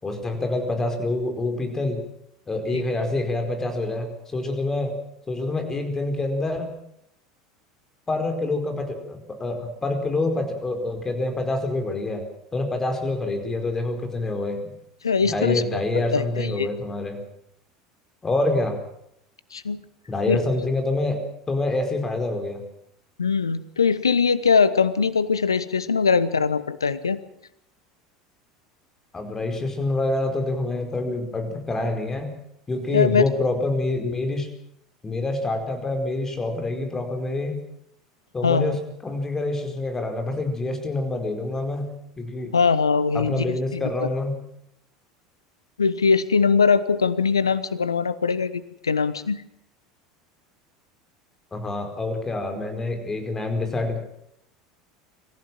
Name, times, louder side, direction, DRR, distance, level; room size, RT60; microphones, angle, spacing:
voice 1, 0.0-2.0 2.5-4.9 5.3-6.7 8.1-12.2 12.5-14.7 15.2-17.2 18.2-18.8 20.1-22.6 29.1-32.3 32.7-34.5 35.0-37.6 38.3-38.8 39.0-41.9 42.2-42.5 43.1-44.4 51.5-54.0, left 2 dB, 20° left, 5 dB, 4.8 m, -26 dB
voice 2, 15.0-16.7 19.5-19.8 20.3-20.6 23.2-27.2 32.9-33.2 38.4-38.7 42.5-43.8 45.8-49.4, left 5 dB, 80° left, 16 dB, 1.0 m, -22 dB
25.0 x 15.5 x 7.6 m, 0.75 s
figure-of-eight pair, 75°, 2 cm